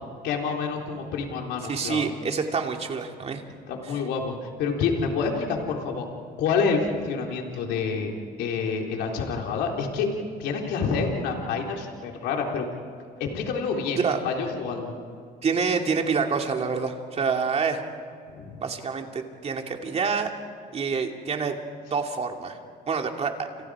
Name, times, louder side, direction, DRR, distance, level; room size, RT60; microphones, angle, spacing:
voice 1, 0.2-2.1 3.7-6.1 6.4-8.1 8.4-10.1 10.4-12.7 13.2-14.0 14.2-15.0 18.3-18.6, left 5 dB, 85° left, 1 dB, 3.7 m, -28 dB
voice 2, 1.7-3.4 14.0-14.2 15.4-17.8 18.6-20.3 20.7-21.6 21.9-22.6 22.9-23.5, right 5 dB, 40° right, 3 dB, 2.7 m, -27 dB
30.0 x 28.0 x 4.9 m, 2.3 s
cardioid pair, 110°, 17 cm